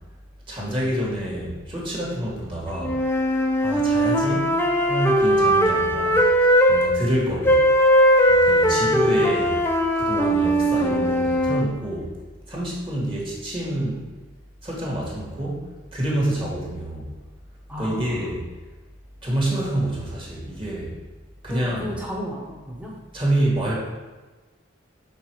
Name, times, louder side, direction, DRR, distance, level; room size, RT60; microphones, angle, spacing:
voice 1, 0.5-3.0 3.6-6.3 6.7-7.6 8.3-9.6 9.9-12.1 12.5-14.1 14.6-17.1 17.8-18.4 19.2-21.0 21.4-21.9 23.1-23.7, right 1 dB, 25° right, -4 dB, 1.6 m, -27 dB
sound 1, 2.8-6.9 7.4-11.7, equal, 10° left, 0.5 m, -19 dB
voice 2, 8.7-9.3 17.7-18.2 21.5-22.9, left 1 dB, 5° right, -3 dB, 0.9 m, -34 dB
6.0 x 4.0 x 4.6 m, 1.3 s
head